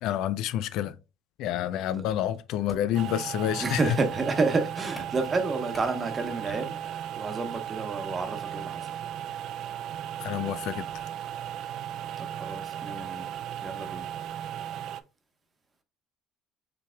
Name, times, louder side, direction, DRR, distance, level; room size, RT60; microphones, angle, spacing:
voice 1, 0.0-1.0 1.4-4.0 6.5-6.6 10.2-11.0, left 11 dB, 75° left, 0.3 m, -29 dB
sound 1, 2.0-6.5, left 1 dB, 10° left, 2.3 m, -50 dB
sound 2, 2.9-15.0, right 10 dB, 65° right, 0.4 m, -36 dB
voice 2, 3.6-6.9 7.2-8.9 12.2-13.2 13.6-14.0, right 3 dB, 30° right, 1.0 m, -30 dB
5.9 x 3.3 x 2.2 m
cardioid pair, 115°, 0 cm